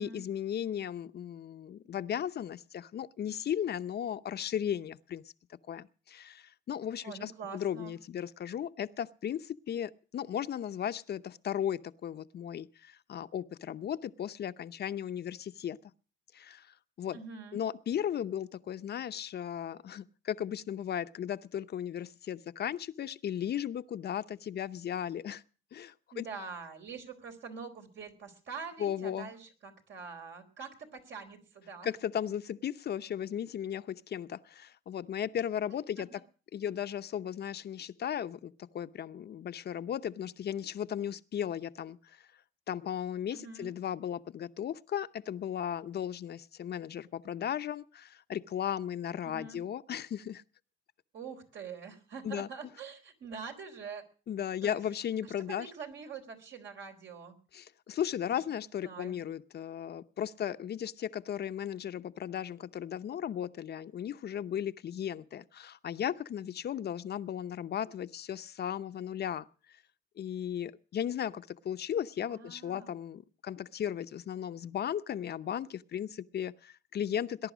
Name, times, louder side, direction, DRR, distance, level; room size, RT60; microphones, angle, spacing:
voice 1, 0.0-5.2 5.7-15.8 16.3-17.2 17.5-25.4 25.7-26.3 28.8-29.3 31.8-36.2 36.5-42.2 42.7-50.4 52.2-52.5 54.3-55.7 57.5-69.5 70.2-77.5, left 9 dB, 55° left, 0.8 m, -36 dB
voice 2, 7.0-8.0 17.1-17.6 26.1-31.9 36.1-36.2 43.3-43.7 49.2-49.6 51.1-54.0 54.6-54.8 55.2-57.4 58.8-59.2 72.3-72.9, right 5 dB, 70° right, 4.1 m, -45 dB
19.5 x 11.0 x 6.2 m
cardioid pair, 90°, 20 cm